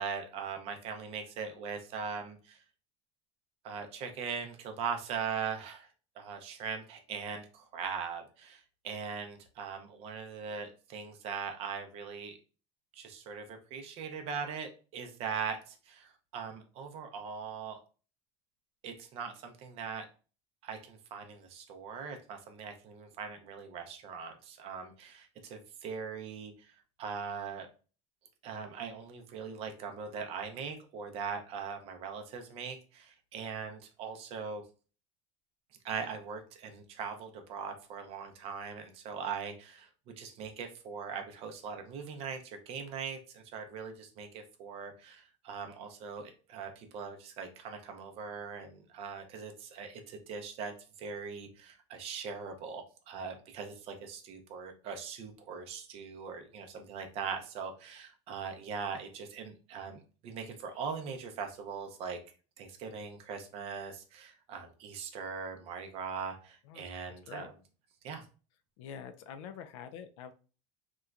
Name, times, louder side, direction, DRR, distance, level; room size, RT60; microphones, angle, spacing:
voice 1, 0.0-2.6 3.6-5.9 6.2-12.4 12.9-17.8 18.8-20.0 20.6-27.7 28.4-34.6 35.8-50.7 51.0-62.2 62.6-67.5 68.0-68.2, right 6 dB, 40° right, 5 dB, 0.5 m, -40 dB
voice 2, 66.6-67.5 68.8-70.3, left 8 dB, 85° left, 9 dB, 0.4 m, -46 dB
2.9 x 2.2 x 2.3 m, 0.36 s
cardioid pair, 160°, 16 cm